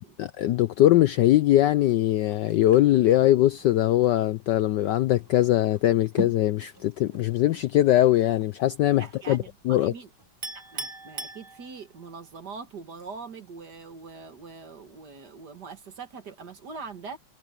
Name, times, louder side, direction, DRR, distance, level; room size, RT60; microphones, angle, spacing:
voice 1, 0.2-9.9, left 14 dB, 75° left, 1.0 m, -21 dB
sound 1, 1.9-10.4 10.7-10.9, right 2 dB, 10° right, 5.0 m, -43 dB
voice 2, 9.0-10.1 10.5-17.2, right 5 dB, 50° right, 2.1 m, -42 dB
Chink clink, 10.4-12.1, right 3 dB, 30° right, 1.1 m, -38 dB
omnidirectional pair, 2.4 m